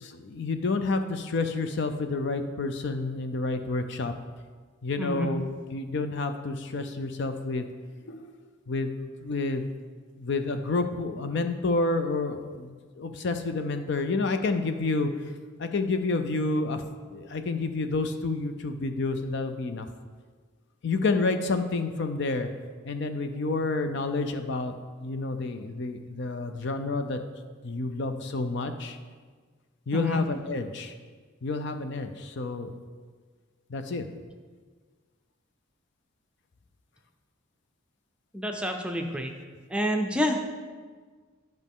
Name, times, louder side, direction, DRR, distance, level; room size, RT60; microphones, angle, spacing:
voice 1, 0.0-4.1 4.8-7.7 8.1-8.3 8.7-8.9 9.2-9.6 10.2-15.1 15.6-16.8 17.1-19.9 20.8-22.5 22.8-24.7 25.0-27.2 27.6-29.0 29.9-30.9 31.4-32.7 33.7-34.0, left 3 dB, 55° left, 8 dB, 0.5 m, -29 dB
voice 2, 5.0-5.3 29.9-30.2 38.3-39.3 39.7-40.5, equal, 5° right, 3 dB, 0.5 m, -28 dB
10.5 x 5.2 x 3.6 m, 1.5 s
head